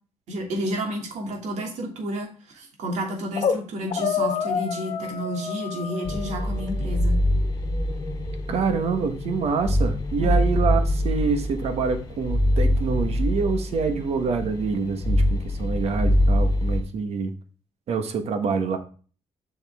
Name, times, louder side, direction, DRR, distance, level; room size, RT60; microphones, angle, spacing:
voice 1, 0.3-7.2 10.2-10.4, equal, 90° right, 2 dB, 2.8 m, -31 dB
sound 1, 3.1-3.6 3.9-6.7, left 7 dB, 65° left, 1.3 m, -28 dB
sound 2, 6.0-16.8, left 1 dB, 30° left, 3.0 m, -24 dB
voice 2, 8.5-17.3 17.9-18.8, right 5 dB, 65° right, 8 dB, 1.4 m, -26 dB
7.6 x 6.4 x 3.6 m, 0.39 s
cardioid pair, 155°, 11 cm